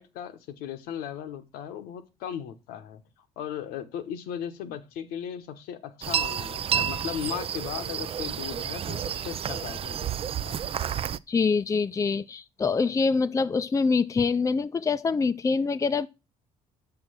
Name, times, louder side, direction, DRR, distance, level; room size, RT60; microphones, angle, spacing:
voice 1, 0.0-3.0 3.4-10.1 10.4-10.6, left 9 dB, 85° left, 1.0 m, -37 dB
sound 1, 6.0-11.2, right 8 dB, 40° right, 0.4 m, -30 dB
voice 2, 11.3-16.1, left 4 dB, 20° left, 0.4 m, -25 dB
6.3 x 5.9 x 6.3 m
supercardioid pair, 70°, 15 cm